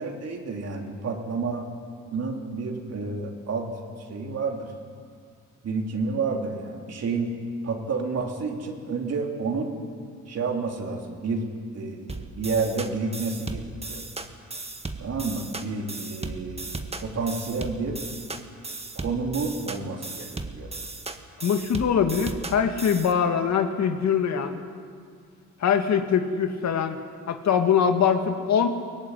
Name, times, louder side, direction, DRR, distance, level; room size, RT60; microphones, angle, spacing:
voice 1, 0.0-1.7 2.1-3.7 4.0-4.7 5.6-7.3 7.6-9.7 10.3-11.5 11.7-14.0 15.0-16.7 17.0-18.0 18.9-20.7, right 4 dB, 55° right, 2 dB, 3.8 m, -30 dB
sound 1, 12.1-23.1, right 3 dB, 20° right, 1.7 m, -36 dB
voice 2, 21.4-24.6 25.6-27.0 27.3-28.7, left 7 dB, 65° left, 6 dB, 2.0 m, -23 dB
23.0 x 17.5 x 10.0 m, 2.1 s
cardioid pair, 90°, 30 cm